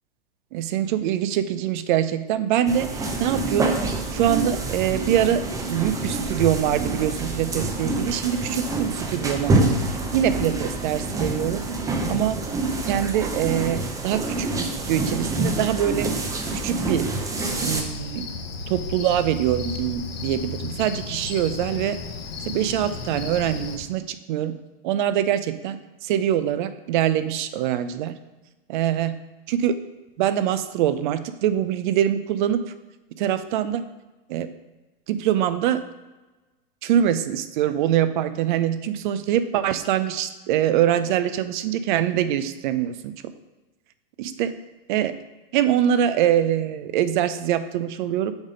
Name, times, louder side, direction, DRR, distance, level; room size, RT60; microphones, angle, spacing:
voice 1, 0.5-3.8 4.1-9.6 9.9-11.6 12.1-12.4 12.9-16.1 16.5-17.1 17.6-18.3 18.7-22.0 22.5-24.6 24.8-28.1 28.7-29.2 29.5-29.8 30.2-32.6 33.2-33.8 34.3-34.5 35.1-35.8 36.8-43.1 44.2-44.5 44.9-45.1 45.5-48.3, right 10 dB, 55° right, 12 dB, 0.6 m, -24 dB
sound 1, 2.7-17.8, right 2 dB, 10° right, 0.6 m, -27 dB
Cricket, 17.3-23.8, left 4 dB, 75° left, 1.1 m, -34 dB
7.0 x 4.0 x 5.1 m, 1.1 s
hypercardioid pair, 130°, 30 cm